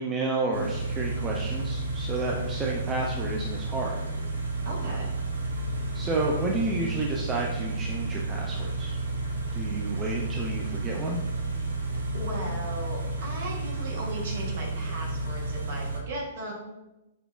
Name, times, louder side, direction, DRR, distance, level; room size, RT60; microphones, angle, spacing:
voice 1, 0.0-3.9 5.9-9.0 9.5-11.2, right 3 dB, 20° right, -2 dB, 0.5 m, -31 dB
Car / Idling, 0.5-16.0, right 2 dB, 75° right, 0.8 m, -31 dB
voice 2, 4.6-5.1 12.1-16.5, right 1 dB, 55° right, -1 dB, 1.3 m, -36 dB
5.4 x 2.9 x 2.5 m, 0.98 s
figure-of-eight pair, 115°, 0 cm